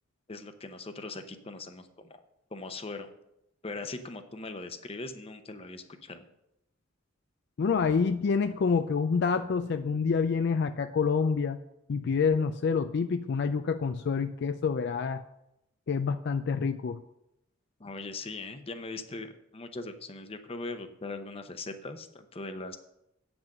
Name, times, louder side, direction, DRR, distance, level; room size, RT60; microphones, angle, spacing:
voice 1, 0.3-2.2 2.5-3.1 3.6-6.3 17.8-22.8, left 3 dB, 30° left, 8 dB, 0.8 m, -40 dB
voice 2, 7.6-11.6 11.9-15.2 15.9-17.0, left 5 dB, 55° left, 10 dB, 0.4 m, -27 dB
8.9 x 6.1 x 6.5 m, 0.85 s
head